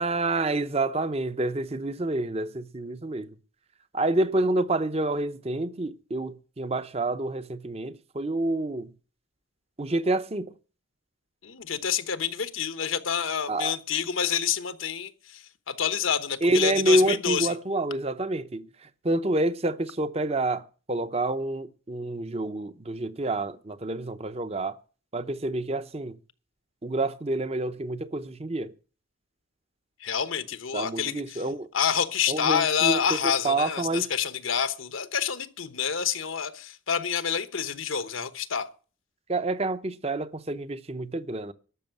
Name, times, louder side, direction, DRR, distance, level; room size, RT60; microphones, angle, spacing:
voice 1, 0.0-3.3 3.9-8.9 9.8-10.5 13.5-13.7 16.4-18.7 19.0-24.8 25.1-26.2 26.8-28.7 30.7-31.7 32.3-34.1 39.3-41.5, right 2 dB, 30° right, 0.7 m, -28 dB
voice 2, 11.4-17.5 30.0-31.4 31.7-38.7, left 8 dB, 80° left, 1.1 m, -28 dB
12.5 x 6.5 x 9.2 m
head